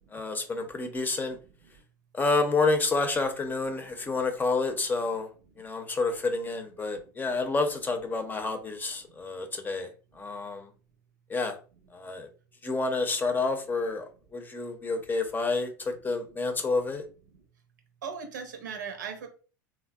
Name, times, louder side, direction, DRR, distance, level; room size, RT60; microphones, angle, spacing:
voice 1, 0.1-1.4 2.1-5.3 5.6-9.9 10.2-10.7 11.3-11.6 11.9-12.3 12.6-14.0 14.3-17.0, left 3 dB, 20° left, 0.6 m, -29 dB
voice 2, 18.0-19.3, right 6 dB, 80° right, 0.8 m, -38 dB
3.4 x 2.2 x 2.2 m
hypercardioid pair, 80°, 10 cm